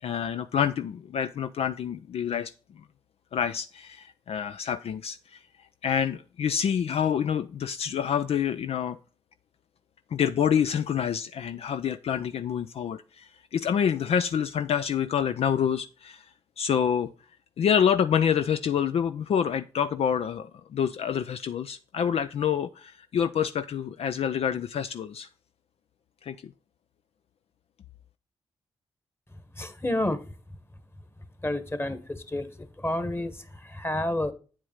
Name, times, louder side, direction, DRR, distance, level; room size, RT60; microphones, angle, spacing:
voice 1, 0.0-2.5 3.3-5.4 5.8-9.0 10.1-16.3 16.6-17.1 17.6-25.3 26.2-26.5, left 8 dB, 65° left, 0.5 m, -27 dB
voice 2, 29.6-30.2 31.4-32.0 32.3-32.5 32.8-33.3 33.7-34.3, left 1 dB, 20° left, 1.7 m, -28 dB
8.8 x 4.6 x 5.7 m
supercardioid pair, 45°, 11 cm